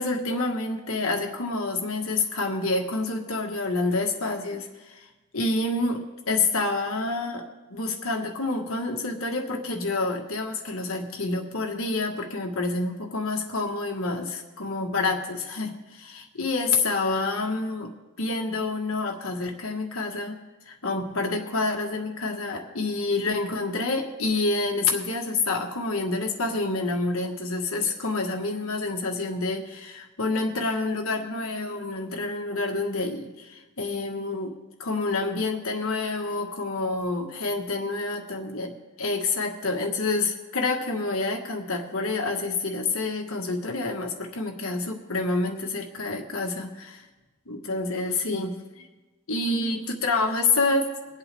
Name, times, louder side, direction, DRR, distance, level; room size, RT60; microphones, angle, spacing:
voice 1, 0.0-5.1 5.3-20.3 20.7-34.5 34.8-47.1 47.5-48.6 49.3-50.9, left 3 dB, 65° left, 2 dB, 1.5 m, -28 dB
23.5 x 8.2 x 3.4 m, 1.2 s
head